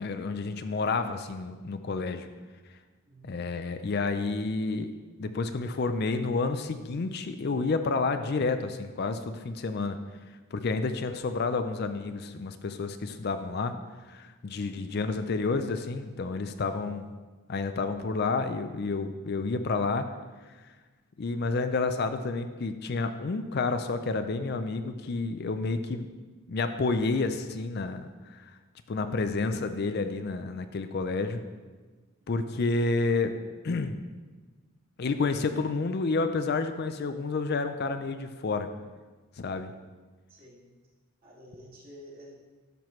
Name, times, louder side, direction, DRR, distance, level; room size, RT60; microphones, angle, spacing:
voice 1, 0.0-2.3 3.2-4.9 5.2-10.0 10.5-13.7 14.1-17.1 17.5-20.1 21.2-26.1 26.5-28.5 28.9-31.4 32.3-33.3 33.6-34.0 35.0-38.7 39.4-39.7, left 3 dB, 50° left, 9 dB, 0.4 m, -30 dB
voice 2, 3.1-3.4 14.4-14.8 32.2-32.5 40.3-40.6 41.2-42.3, equal, 45° right, -5 dB, 2.0 m, -51 dB
12.0 x 6.0 x 3.1 m, 1.3 s
head